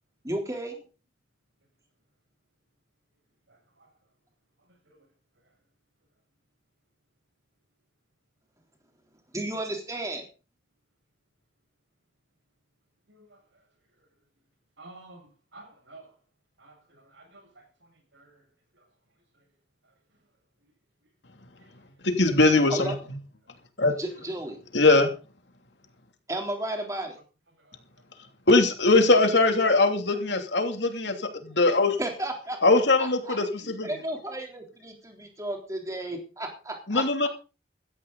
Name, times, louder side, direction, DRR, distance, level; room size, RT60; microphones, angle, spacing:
voice 1, 0.2-0.8 9.3-10.2 22.7-23.0 24.0-24.6 26.3-27.2 32.0-32.6 33.0-37.0, right 1 dB, 15° right, 3 dB, 3.6 m, -33 dB
voice 2, 14.8-16.1 16.6-16.7 17.1-17.5 18.1-18.3, right 2 dB, 85° right, 3 dB, 7.3 m, -49 dB
voice 3, 22.0-22.9 23.8-23.9 24.7-25.1 28.5-32.0 32.6-33.9 36.9-37.3, left 2 dB, 75° left, 5 dB, 2.9 m, -21 dB
16.0 x 14.0 x 4.1 m, 0.34 s
head